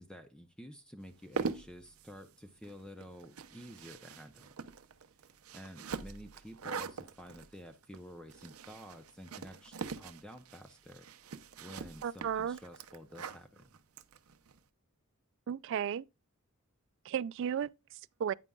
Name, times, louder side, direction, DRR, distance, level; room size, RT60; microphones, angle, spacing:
voice 1, 0.0-4.5 5.5-11.1 11.6-13.7, equal, 5° left, 0.6 m, -51 dB
sound 1, 1.1-14.6, right 5 dB, 90° right, 0.7 m, -43 dB
voice 2, 12.0-12.6 15.5-16.1 17.0-18.3, right 8 dB, 60° right, 0.3 m, -34 dB
9.4 x 8.9 x 2.3 m
head